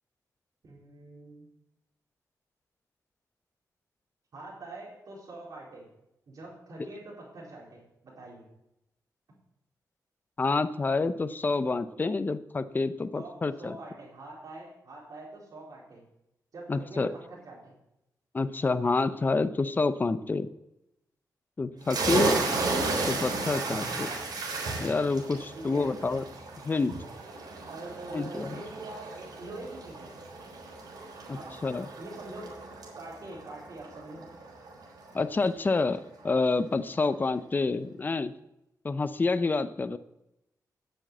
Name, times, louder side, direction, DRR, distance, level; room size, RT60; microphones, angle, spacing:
voice 1, 0.6-1.5 4.3-5.9 6.3-8.4 13.1-16.0 16.5-17.6 21.7-21.9 23.5-24.2 25.5-26.1 27.6-30.3 31.3-31.6 32.0-32.6 33.0-34.3, right 2 dB, 60° right, -6 dB, 4.2 m, -44 dB
voice 2, 10.4-13.8 16.7-17.1 18.3-20.5 21.6-22.4 23.1-24.1 24.8-26.2 26.6-26.9 28.1-28.6 31.3-31.9 35.1-38.3 38.8-40.0, left 3 dB, 25° left, 12 dB, 0.6 m, -28 dB
sound 1, 21.8-35.2, right 3 dB, 85° right, 3.9 m, -34 dB
10.0 x 7.5 x 7.9 m, 0.88 s
wide cardioid pair, 115°, 7 cm